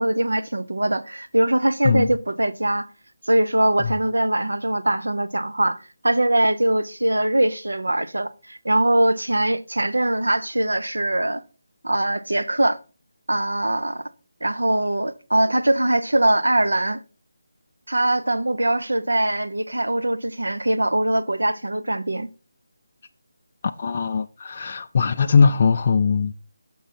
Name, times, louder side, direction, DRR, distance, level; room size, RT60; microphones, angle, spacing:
voice 1, 0.0-2.9 3.3-11.4 11.8-12.8 13.3-14.1 14.4-17.0 17.9-22.3, right 1 dB, 90° right, 0.6 m, -22 dB
voice 2, 23.8-26.3, left 5 dB, 40° left, 0.3 m, -20 dB
6.2 x 5.5 x 4.0 m
figure-of-eight pair, 160°, 0 cm